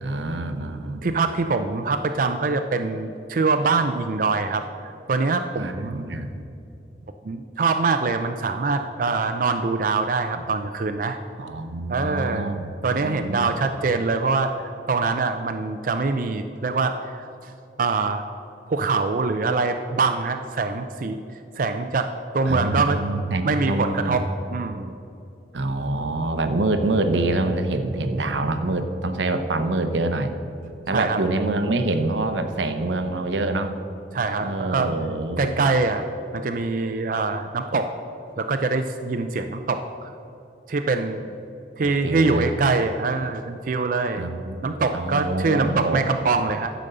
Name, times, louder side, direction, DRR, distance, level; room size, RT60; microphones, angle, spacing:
voice 1, 0.0-1.0 5.5-6.3 11.4-12.7 13.0-13.5 22.5-24.2 25.5-30.3 30.9-33.8 34.4-35.5 41.8-42.5 44.2-46.1, right 2 dB, 90° right, 8 dB, 0.8 m, -26 dB
voice 2, 1.0-4.7 5.1-6.0 7.2-11.2 11.9-12.5 12.8-17.5 17.8-18.2 18.7-21.2 21.6-22.1 22.3-23.0 23.4-24.2 24.5-25.0 30.9-31.2 34.1-34.9 35.4-36.1 36.3-37.9 38.4-40.1 40.7-41.2 41.8-44.2 44.6-46.7, right 4 dB, 50° right, 7 dB, 0.4 m, -24 dB
12.0 x 5.1 x 6.7 m, 2.6 s
head